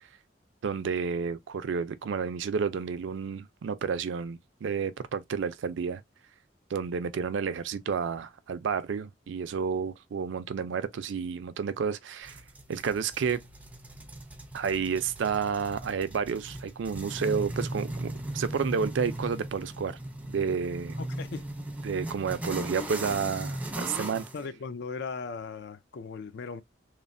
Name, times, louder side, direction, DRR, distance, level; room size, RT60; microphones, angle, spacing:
voice 1, 0.6-6.0 6.7-12.4 12.7-13.4 14.5-20.0 20.3-21.0 21.8-24.2, right 6 dB, 75° right, 0.4 m, -31 dB
sound 1, 12.2-24.4, right 1 dB, 10° right, 0.4 m, -38 dB
voice 2, 21.0-21.5 24.3-26.6, left 5 dB, 60° left, 0.4 m, -38 dB
3.1 x 2.0 x 2.5 m
head